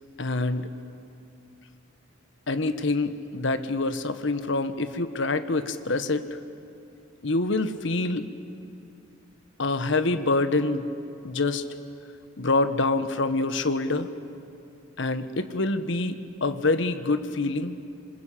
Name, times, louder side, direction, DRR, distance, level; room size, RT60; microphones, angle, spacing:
voice 1, 0.2-0.7 2.5-6.4 7.2-8.2 9.6-10.9 11.2-11.6 12.4-14.1 15.0-17.8, left 2 dB, 65° left, 10 dB, 1.4 m, -26 dB
27.0 x 26.0 x 8.6 m, 2.7 s
head